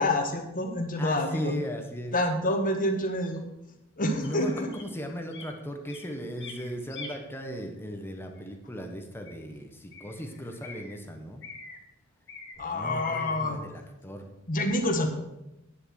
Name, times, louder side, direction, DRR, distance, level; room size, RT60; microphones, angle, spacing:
voice 1, 0.0-1.5 2.1-3.4 4.0-4.7 12.6-13.6 14.5-15.1, left 1 dB, 40° left, 4 dB, 1.5 m, -27 dB
voice 2, 1.0-2.2 4.2-11.4 12.6-14.3, equal, 10° left, 4 dB, 1.2 m, -37 dB
sound 1, 4.2-4.9 5.3-5.5 5.9-7.1 8.4-8.5 9.3-9.4 9.9-11.0 11.4-11.8 12.3-12.6, left 4 dB, 60° left, 2.0 m, -45 dB
9.9 x 6.9 x 6.4 m, 0.91 s
head